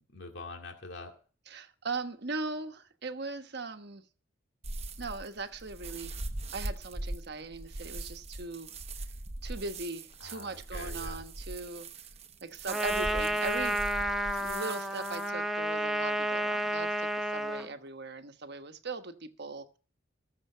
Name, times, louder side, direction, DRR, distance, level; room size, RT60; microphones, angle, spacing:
voice 1, 0.1-1.1 10.2-11.2, left 3 dB, 60° left, 2.3 m, -44 dB
voice 2, 1.5-4.0 5.0-8.7 9.4-11.9 12.4-13.8 14.4-19.8, right 3 dB, 55° right, 1.2 m, -39 dB
sound 1, 4.6-15.3, right 2 dB, 35° right, 1.1 m, -41 dB
Trumpet, 12.7-17.7, right 1 dB, ahead, 0.9 m, -31 dB
19.5 x 7.2 x 5.6 m
head